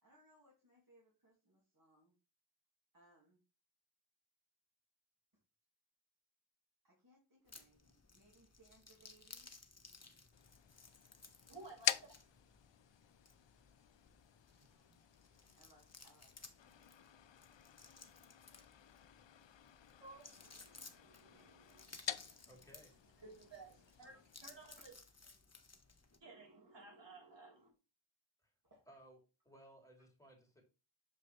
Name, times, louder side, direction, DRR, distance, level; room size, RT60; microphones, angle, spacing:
voice 1, 0.0-2.1 2.9-3.4 6.8-9.5 11.8-11.9 14.6-15.0 15.5-17.0 19.9-20.0 21.3-21.4 28.6-28.9, right 1 dB, 40° right, 2.8 m, -69 dB
sound 1, 7.5-26.2, left 3 dB, 30° left, 1.2 m, -60 dB
sound 2, 10.3-24.7, left 10 dB, 65° left, 0.6 m, -47 dB
voice 2, 11.5-11.9 12.3-12.4 20.0-22.6 23.1-24.9 26.2-27.7, right 3 dB, 60° right, 3.7 m, -57 dB
voice 3, 22.4-22.9 28.4-28.5 28.9-29.2 29.4-30.6, right 1 dB, 5° left, 3.4 m, -61 dB
7.5 x 5.1 x 3.3 m
wide cardioid pair, 55°, 49 cm